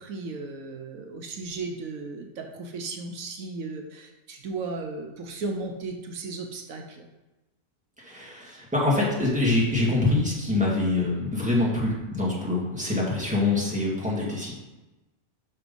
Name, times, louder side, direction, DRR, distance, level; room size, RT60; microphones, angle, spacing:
voice 1, 0.0-7.1, right 3 dB, 75° right, 3 dB, 1.1 m, -35 dB
voice 2, 8.0-14.5, left 2 dB, 5° right, -5 dB, 1.8 m, -25 dB
5.9 x 5.9 x 5.3 m, 1.1 s
omnidirectional pair, 1.5 m